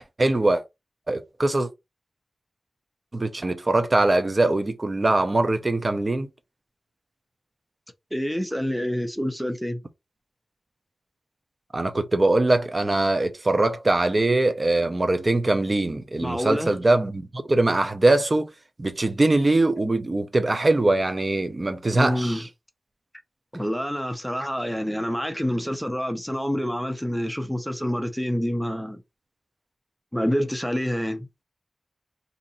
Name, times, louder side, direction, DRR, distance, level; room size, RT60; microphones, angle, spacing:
voice 1, 0.2-0.6 1.1-1.7 3.1-6.3 11.7-18.5 18.8-22.4, right 2 dB, 35° right, 0.6 m, -22 dB
voice 2, 8.1-9.8 16.2-16.8 21.9-22.5 23.5-29.0 30.1-31.3, equal, ahead, 0.6 m, -27 dB
2.8 x 2.6 x 3.9 m
wide cardioid pair, 110°, 0 cm